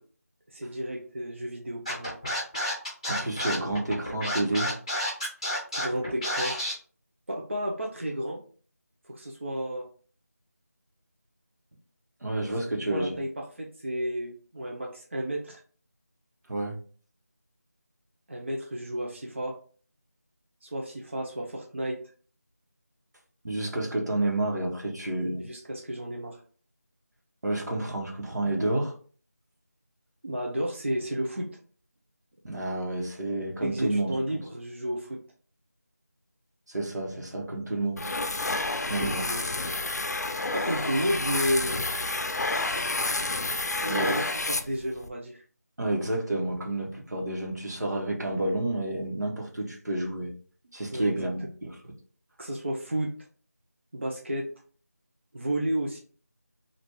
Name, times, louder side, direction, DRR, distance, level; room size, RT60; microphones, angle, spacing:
voice 1, 0.5-2.1 5.7-6.5 7.3-8.4 9.1-9.9 12.8-15.6 18.3-19.5 20.6-22.0 25.4-26.4 30.2-31.5 33.6-35.2 38.8-39.5 40.5-41.8 43.8-45.4 50.9-51.3 52.4-53.1 53.9-54.5 55.3-56.0, right 1 dB, 45° right, -1 dB, 0.4 m, -32 dB
Scratching (performance technique), 1.9-6.7, left 1 dB, 20° left, 0.7 m, -30 dB
voice 2, 3.1-4.7 12.2-13.2 16.5-16.8 23.4-25.4 27.4-28.9 32.4-34.4 36.7-38.1 38.9-39.2 43.9-44.2 45.8-50.3 50.7-51.7, right 2 dB, 85° right, 0 dB, 1.1 m, -30 dB
sound 1, 38.0-45.1, left 2 dB, 75° left, 0.4 m, -29 dB
3.3 x 2.5 x 3.0 m, 0.43 s
figure-of-eight pair, 175°, 9 cm